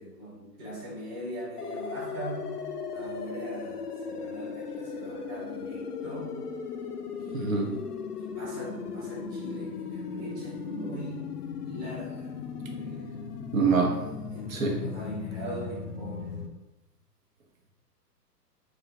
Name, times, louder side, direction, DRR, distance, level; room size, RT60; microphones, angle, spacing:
voice 1, 0.0-2.5 2.9-6.4 7.2-7.9 8.2-11.2 11.6-13.1 14.3-16.3, right 1 dB, 15° right, -7 dB, 0.5 m, -41 dB
sound 1, 1.6-16.5, left 5 dB, 70° left, 0.6 m, -37 dB
voice 2, 7.3-7.8 13.5-14.0 14.5-15.0, right 4 dB, 55° right, 2 dB, 0.8 m, -25 dB
3.7 x 2.6 x 3.4 m, 1.0 s
figure-of-eight pair, 120°, 49 cm